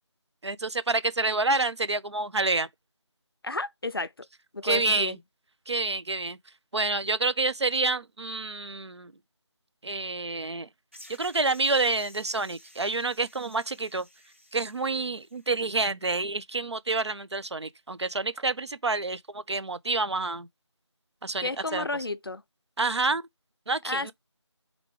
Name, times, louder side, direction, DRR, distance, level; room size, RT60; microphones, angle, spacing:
voice 1, 0.4-2.7 4.6-5.2 5.7-6.4 6.7-9.1 9.8-10.7 11.1-14.1 14.5-20.5 21.2-21.9 22.8-23.2 23.7-24.1, right 3 dB, 65° right, 0.6 m, -28 dB
voice 2, 3.4-4.3 4.5-5.2 21.4-22.4 23.8-24.1, left 3 dB, 50° left, 0.4 m, -32 dB
sound 1, 10.9-15.6, equal, 25° right, 0.5 m, -53 dB
3.7 x 3.6 x 3.2 m
figure-of-eight pair, 175°, 15 cm